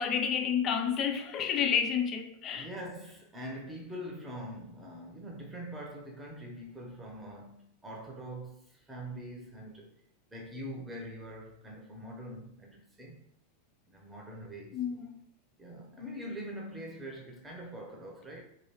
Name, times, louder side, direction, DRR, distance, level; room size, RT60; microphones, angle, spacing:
voice 1, 0.0-2.7 14.7-15.2, left 7 dB, 30° left, 0.4 m, -30 dB
voice 2, 2.5-9.9 10.3-13.2 13.9-14.8 15.6-18.4, equal, 10° right, 0.8 m, -43 dB
4.4 x 2.6 x 3.0 m
figure-of-eight pair, 90°, 0 cm